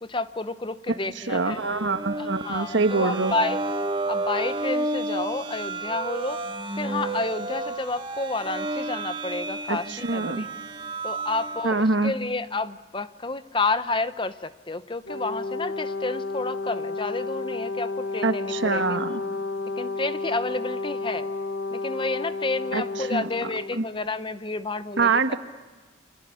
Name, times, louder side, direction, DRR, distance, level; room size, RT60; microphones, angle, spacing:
voice 1, 0.0-1.6 2.2-3.6 4.1-6.4 6.8-10.5 11.0-18.8 19.7-21.3 21.7-25.4, left 3 dB, 25° left, 13 dB, 0.8 m, -30 dB
voice 2, 1.2-3.3 9.7-10.5 11.6-12.1 18.2-19.2 22.7-23.8 25.0-25.4, right 3 dB, 70° right, 9 dB, 1.5 m, -25 dB
sound 1, 1.5-11.8, right 2 dB, 25° right, 1.6 m, -31 dB
Brass instrument, 15.0-23.8, left 3 dB, 65° left, 3.0 m, -31 dB
29.0 x 24.0 x 8.5 m, 1.3 s
head